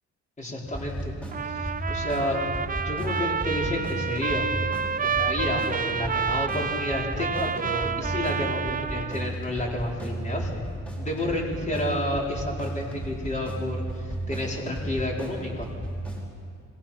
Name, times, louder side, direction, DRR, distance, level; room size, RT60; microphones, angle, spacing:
voice 1, 0.4-1.1 1.4-2.4 2.8-4.4 5.0-10.6 11.0-15.7, left 1 dB, 25° left, -2 dB, 4.9 m, -30 dB
sound 1, 0.6-16.3, right 1 dB, 5° left, 5.0 m, -35 dB
Trumpet, 1.3-9.3, right 6 dB, 30° right, 0.8 m, -29 dB
26.5 x 19.0 x 6.0 m, 2.3 s
cardioid pair, 90°, 30 cm